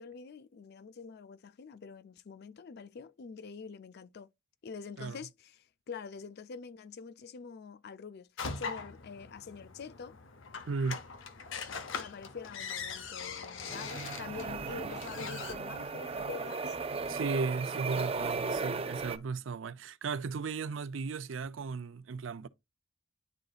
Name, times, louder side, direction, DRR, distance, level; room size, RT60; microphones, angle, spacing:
voice 1, 0.0-4.3 4.6-8.3 8.6-10.2 12.0-16.8, left 5 dB, 55° left, 0.4 m, -45 dB
sound 1, 8.4-15.5, left 5 dB, 80° left, 0.9 m, -41 dB
voice 2, 10.7-11.0 17.1-22.5, right 4 dB, 80° right, 0.5 m, -35 dB
sound 2, 13.7-19.2, right 4 dB, 30° right, 0.5 m, -36 dB
10.5 x 3.8 x 2.4 m
head